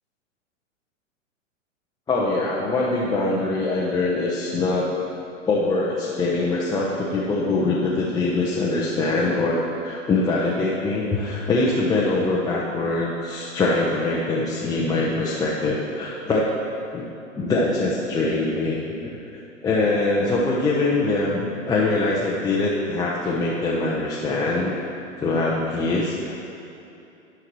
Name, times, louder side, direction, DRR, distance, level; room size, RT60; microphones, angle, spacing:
voice 1, 2.1-4.8 5.5-16.5 16.9-19.0 19.6-24.7 25.2-26.3, left 2 dB, 10° left, -6 dB, 0.6 m, -23 dB
13.0 x 5.8 x 3.1 m, 2.8 s
figure-of-eight pair, 105°, 39 cm